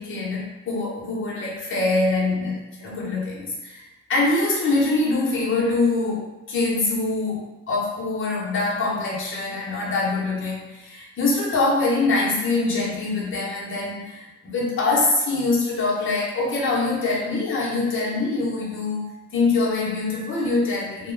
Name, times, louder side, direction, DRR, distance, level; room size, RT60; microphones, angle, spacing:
voice 1, 0.0-3.8 4.1-21.1, left 3 dB, 40° left, -5 dB, 0.9 m, -24 dB
2.3 x 2.2 x 3.2 m, 1.0 s
cardioid pair, 90°, 30 cm